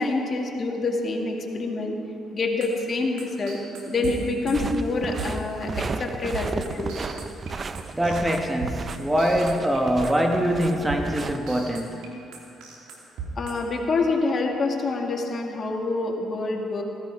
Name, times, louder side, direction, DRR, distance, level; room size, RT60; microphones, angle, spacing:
voice 1, 0.0-2.0 2.3-3.6 3.9-6.9 13.4-16.8, left 3 dB, 45° left, 2.1 m, -26 dB
sound 1, 2.6-5.5 5.8-6.1 6.3-7.5 7.8-9.8 10.0-12.1 12.3-13.5, right 4 dB, 85° right, 2.7 m, -35 dB
sound 2, 4.5-11.4, right 4 dB, 40° right, 0.6 m, -35 dB
voice 2, 7.9-12.1, equal, 10° right, 1.4 m, -24 dB
16.0 x 16.0 x 4.8 m
cardioid pair, 85°, 0 cm